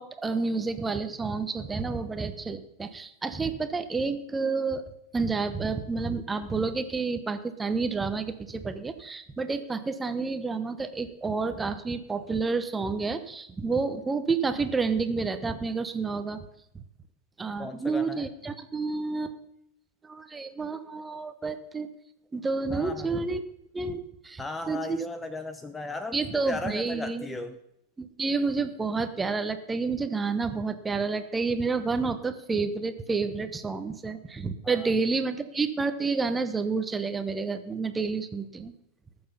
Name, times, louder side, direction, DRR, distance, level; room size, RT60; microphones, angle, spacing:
voice 1, 0.0-4.9 5.1-16.4 16.7-16.8 17.4-19.4 20.0-21.9 22.3-23.4 23.7-25.0 26.1-27.4 28.0-38.7, right 4 dB, 15° right, 10 dB, 1.0 m, -29 dB
voice 2, 17.6-18.3 22.7-23.2 24.4-26.2 26.5-27.6 34.6-35.0, left 2 dB, 10° left, 11 dB, 0.7 m, -36 dB
19.5 x 7.0 x 5.5 m, 0.80 s
figure-of-eight pair, 90°, 0 cm